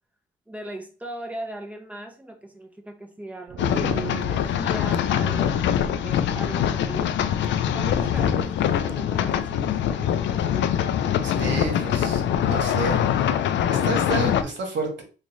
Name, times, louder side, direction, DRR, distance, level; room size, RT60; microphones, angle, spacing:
voice 1, 0.5-7.2 7.7-10.8, right 1 dB, 5° right, 2 dB, 0.9 m, -38 dB
sound 1, 3.5-5.1, right 8 dB, 50° right, 0.4 m, -37 dB
sound 2, 3.6-14.4, left 9 dB, 65° left, 0.4 m, -23 dB
voice 2, 11.2-12.2 12.5-13.0 13.7-15.0, right 3 dB, 65° right, 3 dB, 1.2 m, -30 dB
3.0 x 2.5 x 4.1 m, 0.35 s
cardioid pair, 90°, 20 cm